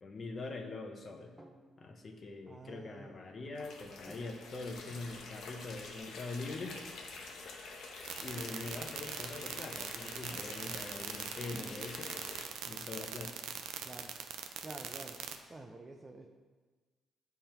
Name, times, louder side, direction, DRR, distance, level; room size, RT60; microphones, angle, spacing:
voice 1, 0.0-1.3 1.8-7.0 8.2-13.3, left 3 dB, 45° left, 4 dB, 1.0 m, -43 dB
sound 1, 1.4-2.0 4.1-4.7 6.6-6.8 8.3-9.1 10.3-11.0 11.5-12.5, right 1 dB, 5° right, 1.0 m, -56 dB
voice 2, 2.4-3.2 13.8-14.1 14.6-15.2 15.5-16.3, right 2 dB, 25° right, 2 dB, 0.6 m, -49 dB
sound 2, 3.5-12.4, left 3 dB, 75° left, 1.1 m, -48 dB
sound 3, 8.0-15.4, right 9 dB, 85° right, 0.5 m, -41 dB
10.0 x 3.6 x 4.4 m, 1.4 s
cardioid pair, 90°, 0 cm